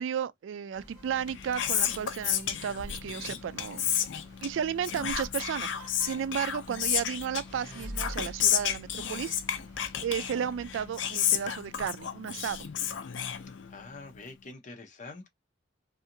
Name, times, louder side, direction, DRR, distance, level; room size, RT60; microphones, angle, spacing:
voice 1, 0.0-3.9 4.4-9.4 10.0-12.7, right 8 dB, 80° right, 0.3 m, -33 dB
sound 1, 0.7-10.9, equal, 15° right, 1.4 m, -53 dB
Whispering, 1.1-14.0, left 9 dB, 75° left, 0.4 m, -32 dB
sound 2, 7.0-8.7, equal, 5° left, 1.0 m, -42 dB
voice 2, 13.3-15.3, left 3 dB, 40° left, 0.7 m, -46 dB
2.7 x 2.4 x 2.6 m
head